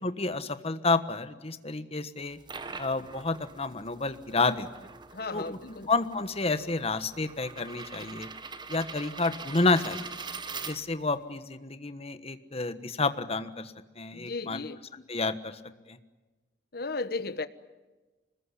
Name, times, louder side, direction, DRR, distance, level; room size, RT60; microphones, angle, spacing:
voice 1, 0.0-2.4 2.8-4.9 5.3-5.6 5.9-8.3 8.7-10.1 10.6-14.6 14.9-15.6 15.9-16.0, left 3 dB, 35° left, 1.3 m, -30 dB
sound 1, 2.2-11.2, right 4 dB, 25° right, 1.4 m, -43 dB
voice 2, 5.1-5.9 14.1-14.9 16.7-17.5, left 3 dB, 60° left, 1.2 m, -35 dB
26.0 x 20.5 x 9.9 m
head